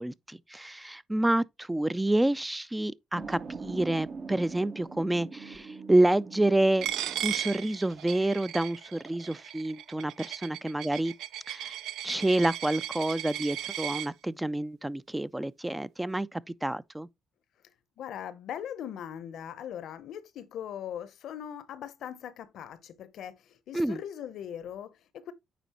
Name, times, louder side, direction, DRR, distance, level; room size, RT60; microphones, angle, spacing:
voice 1, 0.0-6.9 7.2-11.1 11.5-11.8 12.0-17.1 23.7-24.0, right 1 dB, 10° right, 0.3 m, -28 dB
sound 1, 3.1-8.1, right 4 dB, 45° right, 0.8 m, -43 dB
Coin (dropping), 6.8-14.1, right 12 dB, 85° right, 0.5 m, -36 dB
voice 2, 18.0-25.3, left 9 dB, 75° left, 0.7 m, -40 dB
9.2 x 4.1 x 2.9 m
cardioid pair, 90°, 0 cm